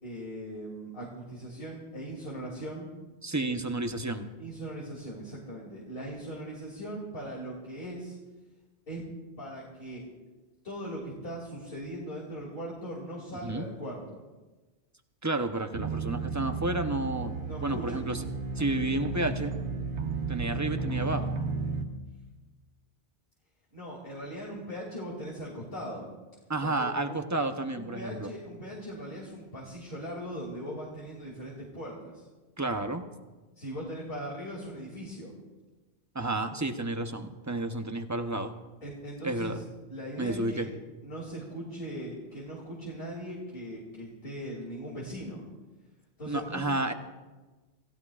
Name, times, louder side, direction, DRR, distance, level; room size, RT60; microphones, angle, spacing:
voice 1, 0.0-2.9 4.4-8.2 8.9-9.0 9.4-10.0 10.6-14.2 17.4-18.1 23.7-26.1 26.6-27.2 27.7-32.3 33.6-35.3 38.8-39.6 39.9-40.7 41.0-45.4 46.2-46.7, equal, 55° left, -4 dB, 3.0 m, -39 dB
voice 2, 3.2-4.3 13.4-13.7 15.2-17.3 17.6-18.2 18.6-19.5 20.3-21.4 26.5-28.3 32.6-33.0 36.1-38.6 39.2-39.6 40.2-40.7 46.3-46.9, right 2 dB, 15° right, 6 dB, 0.8 m, -31 dB
sound 1, 15.7-21.9, right 4 dB, 90° right, 1.4 m, -33 dB
28.0 x 15.5 x 2.5 m, 1.2 s
omnidirectional pair, 1.1 m